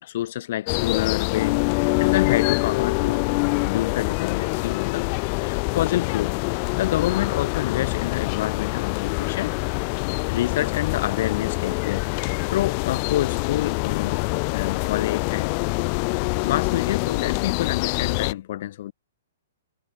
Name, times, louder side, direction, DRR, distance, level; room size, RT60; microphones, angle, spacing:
voice 1, 0.0-5.1 5.4-9.5 10.3-14.2 14.5-15.6 16.4-18.9, left 13 dB, 55° left, 1.9 m, -28 dB
sound 1, 0.7-18.3, left 40 dB or more, 40° left, 1.7 m, -25 dB
hypercardioid pair, 135°, 0 cm